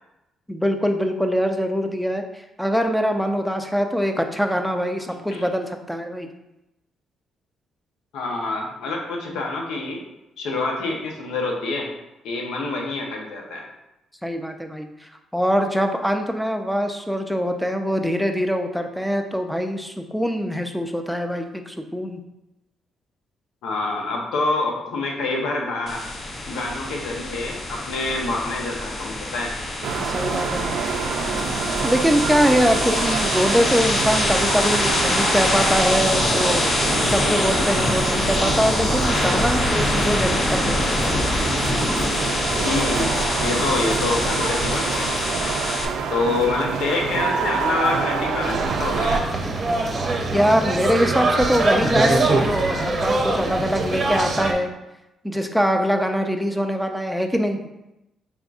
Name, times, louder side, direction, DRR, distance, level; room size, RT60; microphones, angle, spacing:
voice 1, 0.5-6.3 14.2-22.2 30.0-30.8 31.8-36.6 37.0-41.0 50.3-54.7 55.2-57.6, equal, ahead, 5 dB, 0.4 m, -23 dB
voice 2, 8.1-10.0 10.4-11.9 12.2-13.6 23.6-26.0 26.5-29.5 42.6-43.1 43.4-45.5 46.1-49.2, left 3 dB, 85° left, 0 dB, 0.7 m, -26 dB
sound 1, 25.9-45.9, left 2 dB, 40° left, 0.6 m, -24 dB
sound 2, 29.8-49.2, right 6 dB, 80° right, 0.3 m, -27 dB
sound 3, 48.4-54.5, right 2 dB, 45° right, 0.6 m, -23 dB
3.8 x 3.5 x 2.4 m, 0.93 s
cardioid pair, 90°, 0 cm